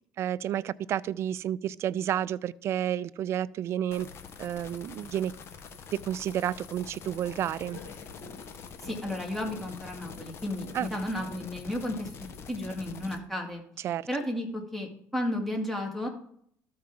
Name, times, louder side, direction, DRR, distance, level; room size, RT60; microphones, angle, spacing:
voice 1, 0.2-4.1 4.4-5.3 6.1-7.8 10.7-10.9 13.8-14.1, right 11 dB, 50° right, 0.3 m, -30 dB
sound 1, 3.9-13.2, left 6 dB, 50° left, 1.0 m, -46 dB
sound 2, 7.0-12.2, left 3 dB, 75° left, 3.3 m, -50 dB
voice 2, 8.8-13.6 14.1-16.1, left 1 dB, 5° left, 2.2 m, -33 dB
13.0 x 4.7 x 3.8 m
supercardioid pair, 95°, 6 cm